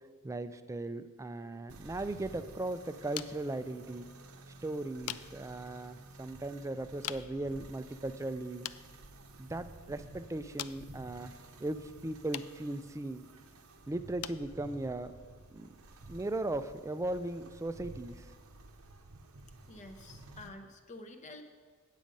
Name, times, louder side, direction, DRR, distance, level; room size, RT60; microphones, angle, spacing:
voice 1, 0.2-4.1 4.6-8.7 9.4-13.3 13.9-15.1 15.5-15.7 16.1-18.3, right 2 dB, 15° right, 11 dB, 0.3 m, -38 dB
sound 1, 1.7-20.5, right 2 dB, 80° right, 0.8 m, -53 dB
sound 2, 1.9-17.0, left 13 dB, 80° left, 0.3 m, -49 dB
voice 2, 19.7-21.4, left 2 dB, 35° left, 6 dB, 0.7 m, -49 dB
8.8 x 8.3 x 5.3 m, 1.5 s
head